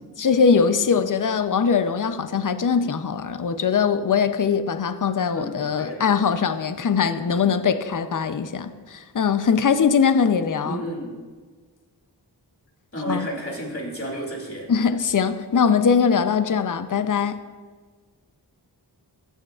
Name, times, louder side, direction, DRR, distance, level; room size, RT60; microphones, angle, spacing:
voice 1, 0.2-10.8 13.1-13.3 14.7-17.4, left 6 dB, 50° left, 11 dB, 0.6 m, -21 dB
voice 2, 5.3-6.0 10.6-11.2 12.9-14.7, equal, 30° left, -1 dB, 2.5 m, -31 dB
15.0 x 6.4 x 2.4 m, 1.5 s
cardioid pair, 40°, 42 cm